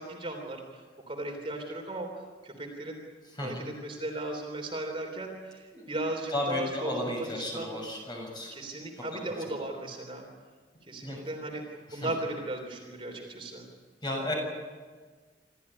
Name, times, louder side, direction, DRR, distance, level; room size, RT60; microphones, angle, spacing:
voice 1, 0.0-2.1 2.4-3.0 3.4-7.7 8.5-10.3 10.9-13.7, right 1 dB, 30° right, 2 dB, 3.5 m, -36 dB
voice 2, 6.3-8.6 11.0-11.2 11.9-12.1 14.0-14.3, left 1 dB, 25° left, 0 dB, 7.0 m, -33 dB
26.5 x 14.5 x 9.8 m, 1.5 s
head